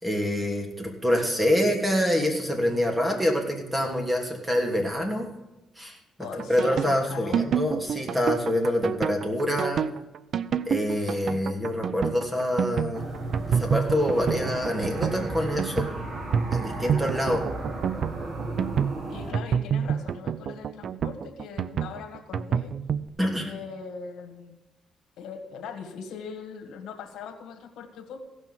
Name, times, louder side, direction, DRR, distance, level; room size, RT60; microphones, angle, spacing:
voice 1, 0.0-5.3 5.8-6.0 6.5-9.8 10.7-13.0 13.5-15.9 16.5-17.4 23.2-23.5, equal, 10° right, 1 dB, 3.1 m, -26 dB
voice 2, 6.2-7.5 19.1-22.7 23.4-24.5 25.2-28.2, left 6 dB, 80° left, 4 dB, 1.7 m, -40 dB
sound 1, 6.2-23.0, right 7 dB, 60° right, 0.6 m, -28 dB
sound 2, 12.9-19.3, right 2 dB, 45° right, 2.1 m, -34 dB
16.0 x 6.2 x 7.6 m, 1.0 s
cardioid pair, 90°, 0 cm